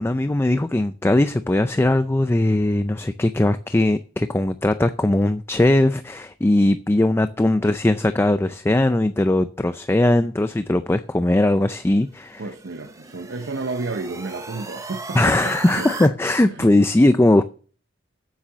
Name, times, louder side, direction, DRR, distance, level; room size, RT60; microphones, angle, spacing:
voice 1, 0.0-12.4 15.1-17.4, left 1 dB, 15° left, 0.4 m, -19 dB
sound 1, 12.1-16.1, right 3 dB, 20° right, 1.0 m, -36 dB
voice 2, 12.4-16.1 16.4-16.7 17.3-17.4, right 3 dB, 75° right, 0.8 m, -31 dB
9.0 x 8.3 x 7.2 m
head